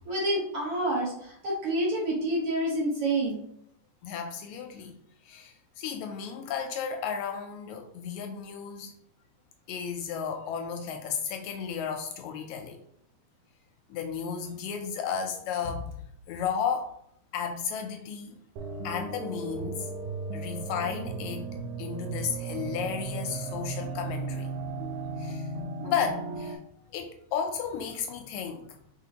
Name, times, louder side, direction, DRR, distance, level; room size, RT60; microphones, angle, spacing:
voice 1, 0.0-3.4, right 1 dB, 55° right, -4 dB, 1.9 m, -28 dB
voice 2, 4.0-5.0 5.3-8.9 9.7-12.8 13.9-15.9 16.3-17.0 17.3-18.4 18.8-19.9 20.3-21.5 21.8-24.5 25.2-26.6 26.9-28.8, left 7 dB, 80° left, 5 dB, 1.8 m, -33 dB
sound 1, 18.6-26.6, right 3 dB, 85° right, 2.1 m, -35 dB
4.9 x 3.8 x 2.8 m, 0.70 s
omnidirectional pair, 3.5 m